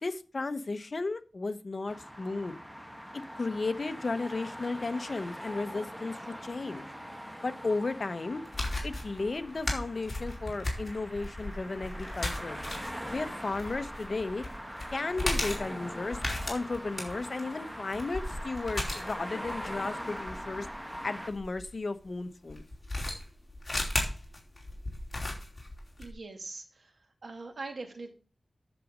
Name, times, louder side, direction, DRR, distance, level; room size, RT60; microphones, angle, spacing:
voice 1, 0.0-2.6 3.1-6.9 7.4-8.4 8.8-12.6 13.1-14.4 14.9-16.2 16.5-20.7 21.0-22.6, left 3 dB, 55° left, 10 dB, 1.0 m, -34 dB
sound 1, 1.9-21.3, equal, 5° right, 1.3 m, -42 dB
sound 2, 8.5-21.6 22.5-26.1, left 1 dB, 30° left, 4.6 m, -36 dB
voice 2, 26.0-26.9 27.2-28.2, right 3 dB, 90° right, 4 dB, 2.2 m, -42 dB
10.5 x 7.3 x 5.2 m, 0.36 s
wide cardioid pair, 100°, 0 cm